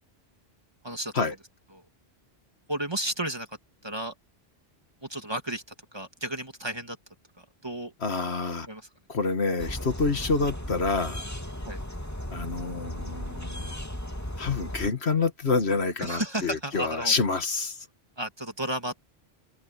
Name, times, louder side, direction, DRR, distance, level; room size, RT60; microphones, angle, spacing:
voice 1, 0.8-1.2 2.7-3.5 3.8-4.1 5.0-5.6 5.9-7.0 7.6-7.9 8.7-8.8 11.6-11.8 16.0-17.1 18.2-19.1, right 1 dB, 25° right, 2.6 m, -32 dB
voice 2, 8.0-8.7 9.1-11.3 12.3-13.8 14.4-17.9, left 4 dB, 80° left, 2.0 m, -27 dB
sound 1, 9.6-14.9, equal, 15° left, 2.7 m, -36 dB
omnidirectional pair, 1.1 m